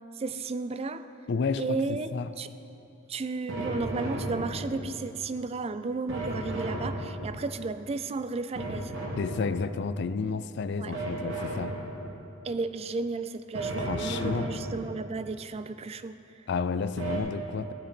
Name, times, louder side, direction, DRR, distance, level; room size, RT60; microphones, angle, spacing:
voice 1, 0.2-1.1 1.6-2.1 2.4-2.5 3.1-8.9 10.8-10.9 12.4-16.4, right 3 dB, 30° right, 12 dB, 0.3 m, -33 dB
voice 2, 1.3-2.3 9.2-11.7 13.8-14.5 16.5-17.7, left 5 dB, 55° left, 13 dB, 0.4 m, -31 dB
sound 1, 3.5-5.1 6.1-7.6 8.6-9.9 10.9-12.3 13.5-15.1 17.0-17.2, right 1 dB, 80° right, 2.4 m, -34 dB
15.5 x 11.0 x 4.4 m, 2.8 s
head